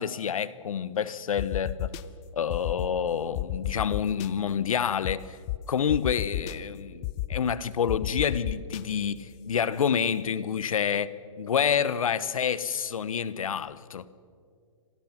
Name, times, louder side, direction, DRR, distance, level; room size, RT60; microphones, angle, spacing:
voice 1, 0.0-1.9 2.3-5.4 5.7-14.1, left 7 dB, 85° left, 1.0 m, -28 dB
sound 1, 1.4-2.0 2.5-2.9 3.4-4.3 5.0-5.1 5.5-5.6 5.9-6.5 7.0-7.4 7.9-8.8, left 13 dB, 25° left, 0.6 m, -31 dB
26.0 x 18.0 x 5.9 m
hypercardioid pair, 150°, 17 cm